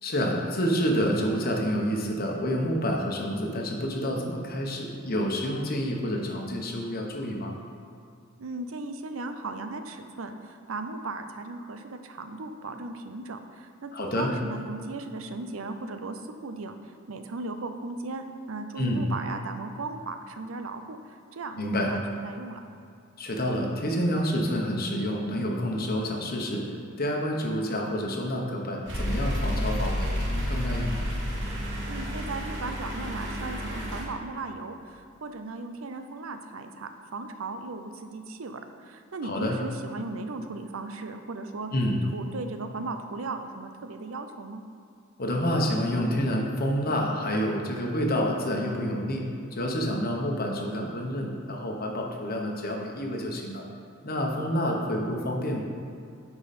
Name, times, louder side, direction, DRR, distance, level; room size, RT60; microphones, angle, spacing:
voice 1, 0.0-7.5 13.9-14.3 18.8-19.0 21.6-21.9 23.2-26.6 27.0-31.1 39.2-39.6 41.7-42.0 45.2-53.6 54.0-55.6, equal, 45° left, 0 dB, 1.0 m, -28 dB
voice 2, 8.4-16.8 17.1-22.6 31.9-41.7 42.1-44.6, right 3 dB, 90° right, 7 dB, 0.6 m, -37 dB
sound 1, 28.9-34.0, equal, 65° right, 1.6 m, -30 dB
10.0 x 4.8 x 4.2 m, 2.4 s
head